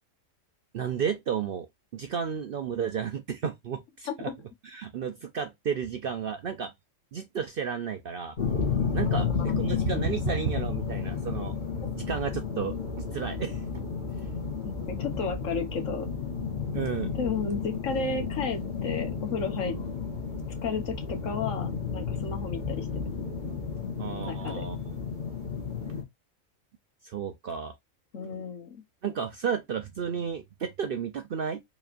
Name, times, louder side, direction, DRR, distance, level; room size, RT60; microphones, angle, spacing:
voice 1, 0.7-1.7 1.9-4.3 4.6-6.7 7.1-8.4 8.9-11.5 11.9-13.9 16.7-17.1 24.0-24.8 27.0-27.8 29.0-31.6, right 7 dB, 60° right, 0.6 m, -32 dB
sound 1, 8.4-26.0, left 5 dB, 35° left, 1.6 m, -32 dB
voice 2, 14.9-16.1 17.1-19.8 20.6-23.0 24.3-24.6 28.1-28.8, left 4 dB, 65° left, 1.4 m, -33 dB
4.8 x 3.0 x 2.4 m
omnidirectional pair, 1.4 m